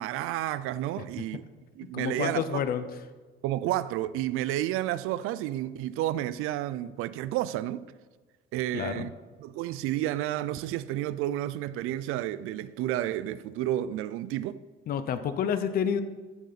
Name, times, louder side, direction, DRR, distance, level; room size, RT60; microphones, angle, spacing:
voice 1, 0.0-1.4 1.8-2.6 3.4-7.9 8.5-9.1 9.4-14.6, right 13 dB, 90° right, 0.5 m, -31 dB
voice 2, 1.9-2.9 8.7-9.1 14.9-16.0, left 8 dB, 45° left, 0.7 m, -29 dB
14.5 x 6.6 x 4.1 m
cardioid pair, 175°, 21 cm